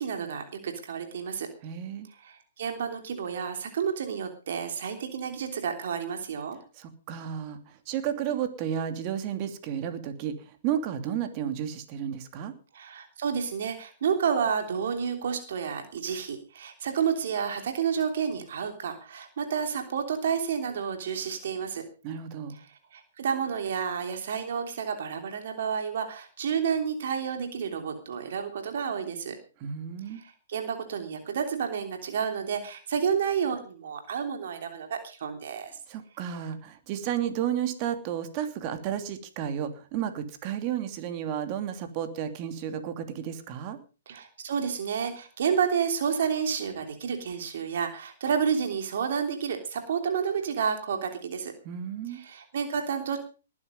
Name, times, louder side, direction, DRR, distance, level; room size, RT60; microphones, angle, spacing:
voice 1, 0.0-1.5 2.1-6.6 12.7-21.8 22.5-29.4 30.1-35.7 44.1-51.5 52.1-53.2, right 7 dB, 60° right, 6 dB, 3.2 m, -30 dB
voice 2, 1.6-2.1 6.8-12.5 22.0-22.6 29.6-30.2 35.9-43.8 51.6-52.2, right 9 dB, 35° right, 9 dB, 2.8 m, -32 dB
20.0 x 9.9 x 5.3 m, 0.35 s
hypercardioid pair, 125°, 0 cm